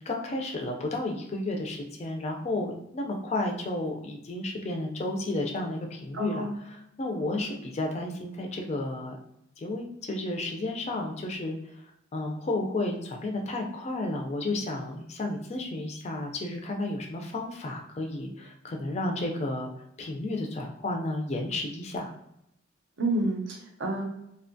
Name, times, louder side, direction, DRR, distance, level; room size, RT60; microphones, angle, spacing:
voice 1, 0.1-6.5 7.0-9.2 9.6-11.6 12.1-19.7 20.0-22.1, left 2 dB, 35° left, 2 dB, 0.3 m, -32 dB
voice 2, 6.1-6.6 23.0-24.1, right 1 dB, 70° right, 1 dB, 0.6 m, -29 dB
2.7 x 2.2 x 2.6 m, 0.81 s
head